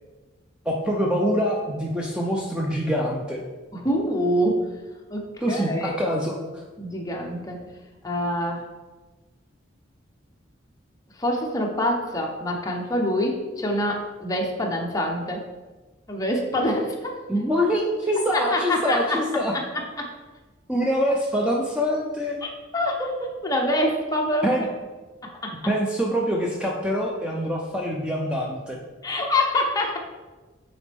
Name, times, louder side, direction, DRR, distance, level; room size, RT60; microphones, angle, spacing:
voice 1, 0.7-3.4 5.4-6.6 17.3-19.6 20.7-22.4 24.4-24.7 25.7-28.8, equal, 5° right, -2 dB, 0.5 m, -25 dB
voice 2, 3.7-4.6 5.1-6.0 6.8-7.6 8.0-8.7 11.2-15.5 16.1-17.2 18.3-19.2 19.5-19.6 20.0-20.1 22.4-24.7 25.4-25.5 29.0-30.0, left 1 dB, 20° left, 0 dB, 0.8 m, -25 dB
8.4 x 4.1 x 3.4 m, 1.3 s
head